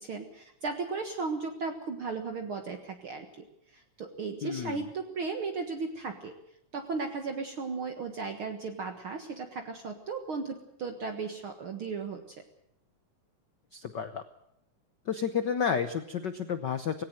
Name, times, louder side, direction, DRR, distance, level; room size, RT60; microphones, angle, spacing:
voice 1, 0.0-3.5 3.7-6.3 6.7-12.2, right 4 dB, 50° right, 5 dB, 2.1 m, -36 dB
voice 2, 4.4-4.9 13.7-14.2 15.1-17.0, left 7 dB, 80° left, 11 dB, 0.9 m, -31 dB
19.0 x 17.5 x 7.8 m, 0.79 s
omnidirectional pair, 3.5 m